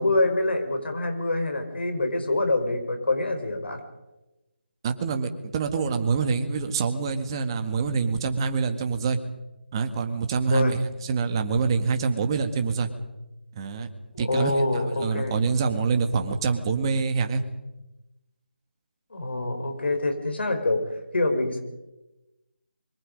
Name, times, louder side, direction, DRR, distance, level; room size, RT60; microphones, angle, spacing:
voice 1, 0.0-3.8 10.5-10.7 14.1-15.5 19.1-20.8 21.1-21.6, left 2 dB, 70° left, 5 dB, 4.9 m, -25 dB
voice 2, 4.8-9.2 9.7-12.9 13.5-13.9 14.2-14.6 15.0-17.4, right 5 dB, 25° right, 7 dB, 1.7 m, -26 dB
25.0 x 23.5 x 5.3 m, 1.0 s
figure-of-eight pair, 165°, 6 cm